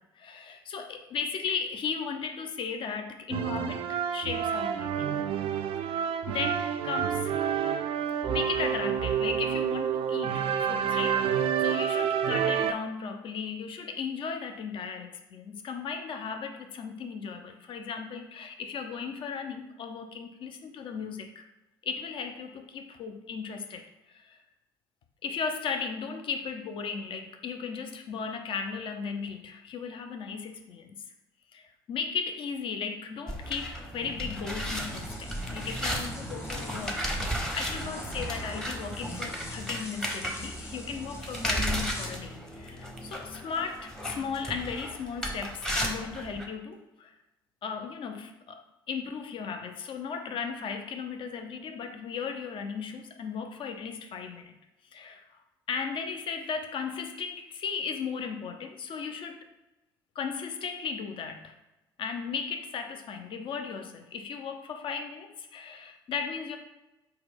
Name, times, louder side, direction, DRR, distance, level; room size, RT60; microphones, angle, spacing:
voice 1, 0.0-5.1 5.8-7.3 8.2-21.5 21.8-24.4 25.2-31.0 31.5-47.1 47.6-48.6 48.9-54.6 54.9-55.4 55.7-59.5 60.2-61.6 62.0-66.6, left 6 dB, 45° left, 5 dB, 0.6 m, -36 dB
sound 1, 3.3-12.7, right 8 dB, 50° right, 0.4 m, -28 dB
sound 2, 33.3-46.5, equal, 5° left, 0.8 m, -34 dB
sound 3, 34.8-42.1, left 1 dB, 20° left, 1.1 m, -47 dB
3.9 x 2.3 x 4.3 m, 0.99 s
figure-of-eight pair, 60°, 12 cm